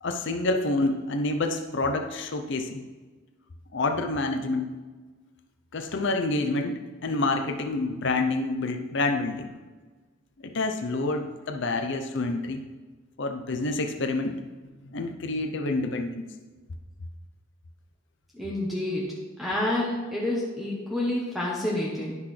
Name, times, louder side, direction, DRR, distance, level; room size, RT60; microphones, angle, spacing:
voice 1, 0.0-2.8 3.7-4.7 5.7-9.5 10.4-12.6 13.2-14.4 14.9-16.2, left 2 dB, 55° left, 5 dB, 0.6 m, -28 dB
voice 2, 18.3-22.2, left 1 dB, ahead, -5 dB, 0.9 m, -29 dB
10.5 x 5.9 x 3.2 m, 1.3 s
head